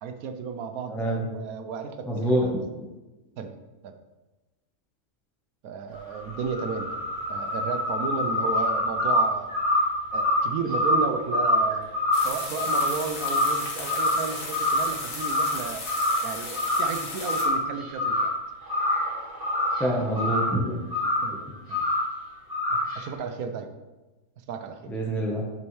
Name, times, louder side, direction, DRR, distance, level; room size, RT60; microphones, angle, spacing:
voice 1, 0.0-2.6 3.4-3.6 3.8-3.9 5.6-7.0 7.3-9.5 10.1-11.9 12.2-15.8 16.2-18.3 21.2-21.8 22.7-23.8 24.5-24.9, right 5 dB, 75° right, 8 dB, 1.1 m, -33 dB
voice 2, 0.9-1.2 2.1-2.6 19.8-20.8 24.9-25.4, right 1 dB, ahead, -2 dB, 0.6 m, -26 dB
sound 1, 5.9-13.6 13.9-14.3 14.5-15.6 15.8-16.2 16.5-17.0 17.3-18.4 18.7-20.6 20.9-21.3 21.7-22.1 22.5-23.0, left 1 dB, 25° right, 2.2 m, -25 dB
sound 2, 12.1-17.5, left 3 dB, 85° left, 1.8 m, -36 dB
8.4 x 5.4 x 3.1 m, 1.1 s
omnidirectional pair, 1.6 m